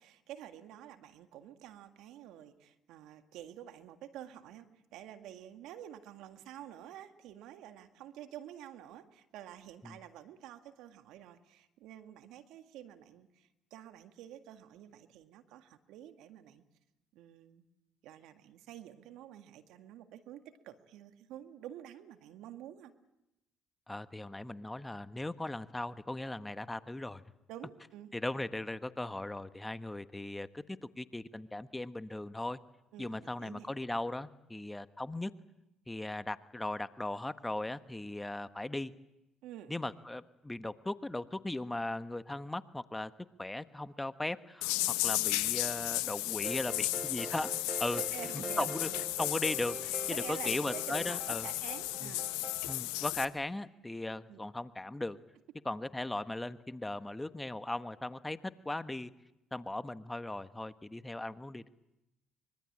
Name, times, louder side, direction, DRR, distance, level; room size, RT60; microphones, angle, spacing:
voice 1, 0.0-4.7 4.9-16.6 17.1-17.7 18.0-22.9 27.5-28.1 32.9-33.7 39.4-39.7 48.0-49.0 49.8-52.3 54.3-54.4, right 11 dB, 75° right, 8 dB, 1.9 m, -49 dB
voice 2, 23.9-27.2 28.1-32.6 33.0-35.3 35.9-38.9 39.7-43.1 43.4-47.5 47.8-48.0 48.3-48.9 49.2-51.5 52.0-52.1 52.7-55.2 55.6-59.1 59.5-61.7, left 2 dB, 15° left, 12 dB, 1.2 m, -38 dB
sound 1, 44.6-53.3, left 18 dB, 80° left, 1.1 m, -34 dB
sound 2, 46.4-52.7, right 4 dB, 30° right, 1.6 m, -44 dB
24.5 x 23.0 x 8.8 m, 0.90 s
hypercardioid pair, 60°, 0 cm